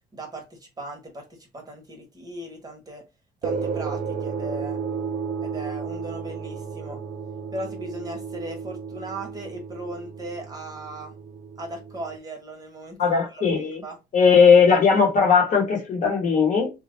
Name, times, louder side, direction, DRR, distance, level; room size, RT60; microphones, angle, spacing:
voice 1, 0.1-3.0 3.4-4.8 5.4-7.0 7.5-11.1 11.6-13.4 13.8-13.9, right 1 dB, 20° right, 1.1 m, -37 dB
sound 1, 3.4-12.2, right 5 dB, 50° right, 0.6 m, -33 dB
voice 2, 13.0-13.8 14.1-16.7, left 5 dB, 50° left, 1.2 m, -18 dB
2.9 x 2.3 x 3.1 m
cardioid pair, 110°, 17 cm